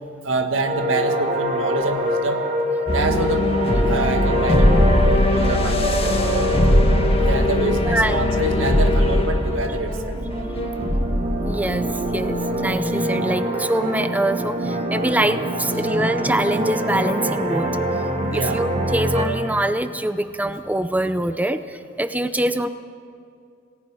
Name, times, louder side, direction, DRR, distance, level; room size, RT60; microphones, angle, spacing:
voice 1, 0.2-2.4 2.9-3.5 3.9-4.7 5.1-6.5 7.2-10.2 18.4-18.6, right 3 dB, 85° right, 5 dB, 1.7 m, -26 dB
sound 1, 0.6-19.2, equal, 35° right, 2.4 m, -25 dB
sound 2, 2.9-12.3, left 1 dB, 30° left, 1.6 m, -20 dB
voice 2, 7.8-8.4 11.4-17.7 18.3-22.7, right 1 dB, 10° right, 10 dB, 0.5 m, -24 dB
27.5 x 19.0 x 4.9 m, 2.4 s
head